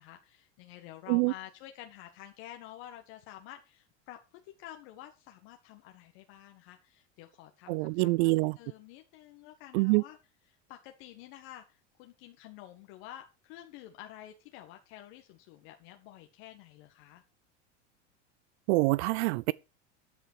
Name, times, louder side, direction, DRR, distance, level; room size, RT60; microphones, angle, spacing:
voice 1, 0.0-10.2 10.7-17.2, left 13 dB, 65° left, 1.7 m, -50 dB
voice 2, 7.7-8.6 9.7-10.0 18.7-19.5, right 24 dB, 70° right, 0.5 m, -25 dB
13.5 x 8.0 x 4.7 m
supercardioid pair, 110°, 34 cm